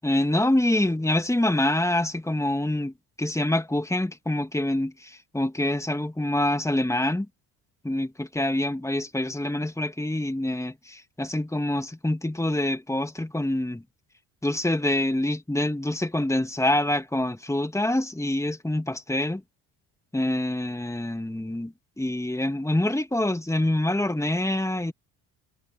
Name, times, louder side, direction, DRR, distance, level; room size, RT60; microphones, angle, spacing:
voice 1, 0.0-2.9 3.2-7.3 7.8-13.8 14.4-19.4 20.1-24.9, left 1 dB, 5° left, 2.5 m, -26 dB
supercardioid pair, 65°, 46 cm